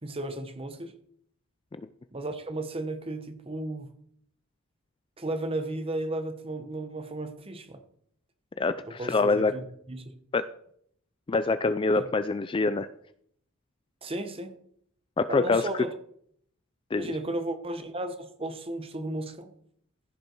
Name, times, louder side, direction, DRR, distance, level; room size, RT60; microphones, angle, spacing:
voice 1, 0.0-0.9 2.1-3.9 5.2-7.8 8.9-10.1 14.0-14.6 15.3-15.9 16.9-19.5, right 1 dB, 25° right, 1.0 m, -34 dB
voice 2, 8.6-9.5 10.3-10.5 11.3-12.9 15.2-15.7 16.9-17.1, left 3 dB, 25° left, 0.3 m, -25 dB
15.0 x 5.4 x 4.5 m
head